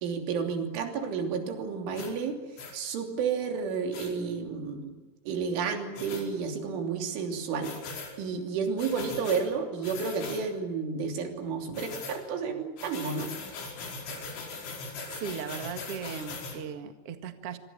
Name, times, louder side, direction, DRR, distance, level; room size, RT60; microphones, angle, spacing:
voice 1, 0.0-2.4 2.7-5.0 5.3-7.7 8.2-13.3, right 5 dB, 90° right, 4 dB, 5.6 m, -31 dB
sound 1, 2.0-2.1 2.6-2.8 3.9-4.1 6.0-6.2 7.6-8.1 8.8-9.4 9.8-10.4 11.7-12.2 12.8-16.6, left 4 dB, 90° left, 7.5 m, -40 dB
voice 2, 15.1-17.6, right 7 dB, 55° right, 7 dB, 1.7 m, -38 dB
26.0 x 25.5 x 7.4 m, 1.3 s
omnidirectional pair, 5.4 m